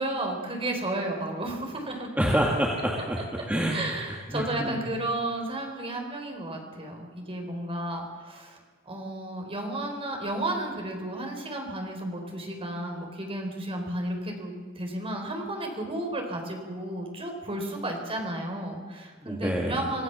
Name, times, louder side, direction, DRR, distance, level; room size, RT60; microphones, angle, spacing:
voice 1, 0.0-2.1 3.2-8.6 8.8-20.0, right 1 dB, 30° right, 2 dB, 4.3 m, -33 dB
voice 2, 2.2-3.2 3.5-3.8 4.3-4.8 19.2-19.8, equal, 5° right, -2 dB, 2.1 m, -26 dB
25.5 x 16.5 x 6.9 m, 1.5 s
head